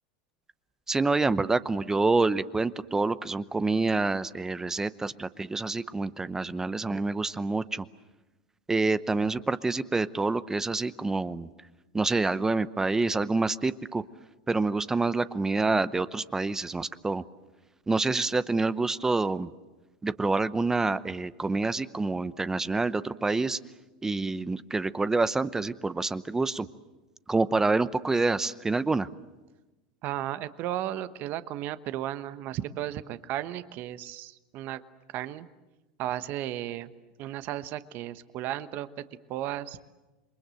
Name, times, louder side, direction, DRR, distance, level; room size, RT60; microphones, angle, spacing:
voice 1, 0.9-7.9 8.7-11.5 11.9-14.0 14.5-17.2 17.9-19.5 20.0-23.6 24.0-26.7 27.3-29.1, right 3 dB, 10° right, 14 dB, 0.8 m, -27 dB
voice 2, 30.0-34.8 35.1-35.5 36.0-36.9 37.2-39.0 39.3-39.8, right 13 dB, 50° right, 13 dB, 1.2 m, -34 dB
28.0 x 22.5 x 7.8 m, 1.1 s
supercardioid pair, 110°, 4 cm